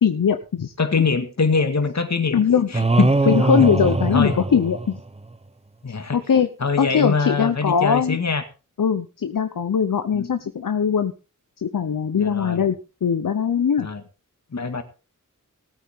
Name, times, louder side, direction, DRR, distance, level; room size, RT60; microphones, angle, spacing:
voice 1, 0.0-0.7 2.3-2.7 3.3-5.0 6.1-6.5 6.8-8.2 8.8-11.1 11.6-13.9, left 7 dB, 80° left, 8 dB, 0.9 m, -20 dB
voice 2, 0.8-2.4 2.7-3.1 3.6-3.7 4.1-4.4 5.8-6.2 6.6-8.4 10.1-10.3 12.2-12.6 13.8-14.0 14.5-14.8, left 4 dB, 55° left, 8 dB, 2.0 m, -23 dB
sound 1, 2.7-5.2, right 2 dB, 20° right, 0.7 m, -21 dB
19.0 x 8.8 x 3.7 m, 0.33 s
wide cardioid pair, 80°, 32 cm